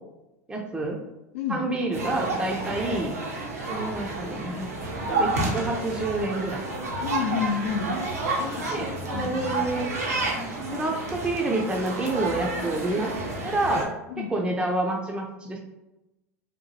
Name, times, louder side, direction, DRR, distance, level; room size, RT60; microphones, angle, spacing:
voice 1, 0.5-1.0 1.5-3.1 3.7-4.7 5.1-6.6 8.7-9.9 10.7-13.1 13.4-13.9 14.2-15.6, right 2 dB, 10° right, 0 dB, 0.4 m, -28 dB
sound 1, 1.9-13.9, right 2 dB, 85° right, 0.6 m, -30 dB
voice 2, 7.0-7.9 8.4-9.5 9.8-9.9 14.1-14.3, left 8 dB, 75° left, 3 dB, 0.4 m, -30 dB
2.8 x 2.2 x 2.8 m, 0.97 s
hypercardioid pair, 85°, 8 cm